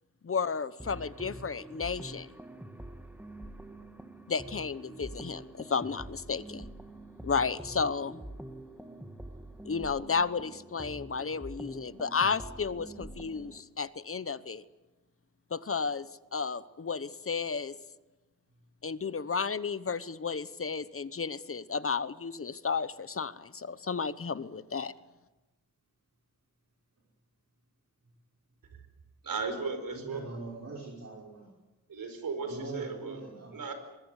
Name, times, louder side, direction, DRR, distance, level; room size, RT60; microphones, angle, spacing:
voice 1, 0.2-2.3 4.3-6.7 7.2-8.2 9.6-14.6 15.5-17.7 18.8-24.9, left 5 dB, 40° left, 15 dB, 1.0 m, -33 dB
sound 1, 0.8-13.6, right 1 dB, 5° right, 1.9 m, -45 dB
voice 2, 29.2-30.2 31.9-33.2 33.5-33.7, right 4 dB, 75° right, 8 dB, 5.1 m, -35 dB
voice 3, 29.9-31.5 32.4-33.6, right 3 dB, 45° right, -4 dB, 5.5 m, -42 dB
24.0 x 21.5 x 8.2 m, 1.1 s
wide cardioid pair, 110°, 35 cm